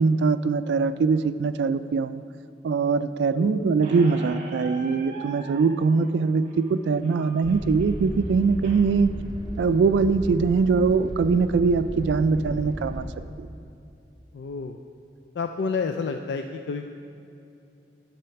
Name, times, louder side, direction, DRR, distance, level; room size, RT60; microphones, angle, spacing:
voice 1, 0.0-2.2 2.6-9.1 9.6-13.1 13.4-13.5, right 4 dB, 75° right, 12 dB, 0.3 m, -22 dB
voice 2, 3.3-3.8 14.3-14.8 15.3-16.9, left 4 dB, 70° left, 5 dB, 0.3 m, -30 dB
Squeak, 3.8-8.8, right 2 dB, 40° right, 1.2 m, -43 dB
sound 1, 7.4-13.1, right 1 dB, 25° right, 0.7 m, -35 dB
11.0 x 4.3 x 5.7 m, 2.7 s
head